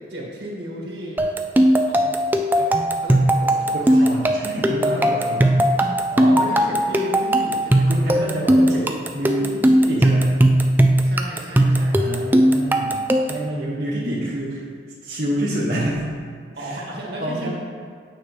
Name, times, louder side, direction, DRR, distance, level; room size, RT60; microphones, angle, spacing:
voice 1, 0.1-1.2 1.9-2.1 2.5-4.1 4.8-5.1 6.3-8.9 11.0-12.4 16.6-17.5, right 1 dB, 75° right, -3 dB, 1.7 m, -35 dB
sound 1, 1.2-13.5, right 1 dB, 10° right, 0.3 m, -18 dB
voice 2, 3.7-5.7 6.1-6.4 7.9-8.9 9.1-10.3 12.0-14.6 15.0-16.1 16.5-16.8 17.2-17.5, right 1 dB, 60° right, -9 dB, 1.3 m, -27 dB
8.8 x 6.2 x 3.1 m, 2.1 s
head